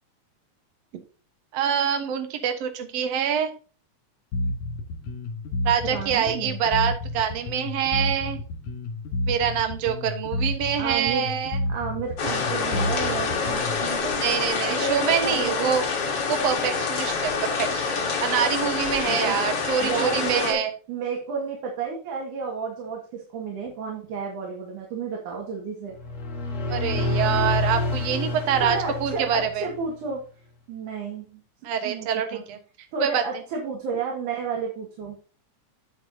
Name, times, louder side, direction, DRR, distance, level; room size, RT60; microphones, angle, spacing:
voice 1, 1.5-3.5 5.7-8.4 9.3-11.6 14.2-15.8 16.3-20.7 26.7-29.7 31.6-32.6 33.0-33.2, right 8 dB, 65° right, 6 dB, 2.2 m, -25 dB
Bass guitar, 4.3-13.9, left 2 dB, 75° left, 3.0 m, -30 dB
voice 2, 5.9-6.6 10.8-11.3 11.7-15.8 19.1-19.4 19.8-20.6 20.9-26.0 28.6-30.2 30.7-31.4 31.8-32.4 32.9-35.2, right 5 dB, 85° right, -1 dB, 3.3 m, -32 dB
sound 1, 12.2-20.5, left 5 dB, 55° left, 2.6 m, -27 dB
sound 2, 26.0-29.8, left 3 dB, 35° left, 1.3 m, -28 dB
8.8 x 8.7 x 2.7 m, 0.36 s
omnidirectional pair, 3.4 m